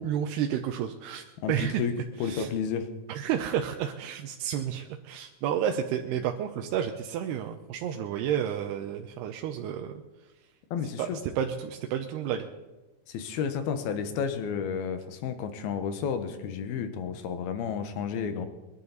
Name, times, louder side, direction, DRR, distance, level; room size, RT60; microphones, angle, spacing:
voice 1, 0.0-1.8 2.2-2.5 3.1-9.9 11.0-12.5, right 9 dB, 75° right, 4 dB, 2.6 m, -31 dB
voice 2, 1.4-1.9 2.2-2.9 6.2-6.3 10.7-11.2 13.1-18.5, left 7 dB, 70° left, 9 dB, 2.7 m, -31 dB
23.0 x 11.5 x 4.1 m, 1.1 s
omnidirectional pair, 5.1 m